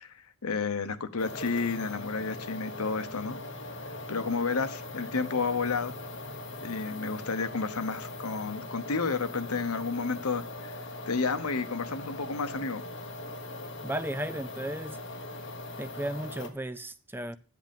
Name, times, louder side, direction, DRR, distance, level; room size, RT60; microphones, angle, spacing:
voice 1, 0.0-3.4 3.9-6.0 6.6-10.8 11.1-12.8, left 4 dB, 80° left, 1.0 m, -31 dB
sound 1, 1.2-16.5, left 2 dB, 55° left, 1.5 m, -40 dB
voice 2, 13.8-15.0 15.8-17.4, right 1 dB, 10° right, 0.4 m, -35 dB
10.5 x 8.1 x 5.3 m
head